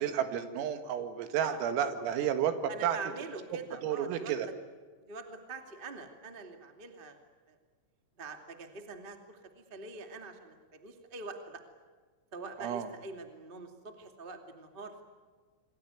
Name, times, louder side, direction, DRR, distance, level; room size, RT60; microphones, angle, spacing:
voice 1, 0.0-3.0 3.8-4.5 12.6-12.9, right 9 dB, 85° right, 8 dB, 4.4 m, -31 dB
voice 2, 2.7-4.4 5.1-7.2 7.5-7.6 8.2-11.6 12.3-15.0, right 4 dB, 40° right, 5 dB, 0.7 m, -44 dB
28.0 x 22.0 x 9.5 m, 1.5 s
omnidirectional pair, 5.9 m